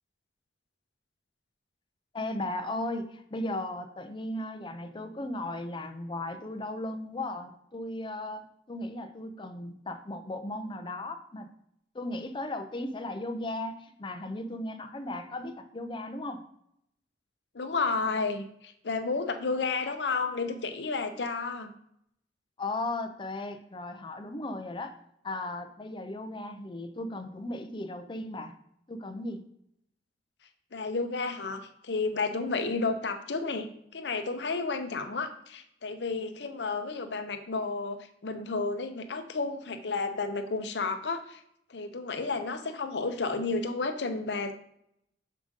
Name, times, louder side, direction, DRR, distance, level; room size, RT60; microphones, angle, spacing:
voice 1, 2.1-11.5 11.9-16.4 22.6-24.9 25.2-28.6 28.9-29.5, left 1 dB, 25° left, 8 dB, 0.5 m, -36 dB
voice 2, 17.5-21.7 30.7-33.7 33.9-41.4 41.7-44.5, left 4 dB, 70° left, 7 dB, 0.7 m, -32 dB
6.6 x 5.0 x 3.6 m, 0.73 s
head